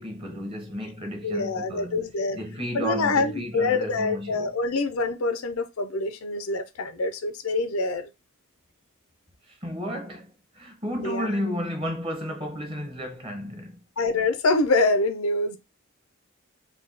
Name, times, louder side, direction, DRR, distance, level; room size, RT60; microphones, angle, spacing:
voice 1, 0.0-2.1 2.3-4.5 9.5-13.8, equal, 25° right, 1.0 m, -33 dB
voice 2, 1.2-2.4 2.7-8.1 11.0-11.3 14.0-15.6, left 3 dB, 85° left, 0.6 m, -25 dB
3.4 x 2.3 x 3.9 m
head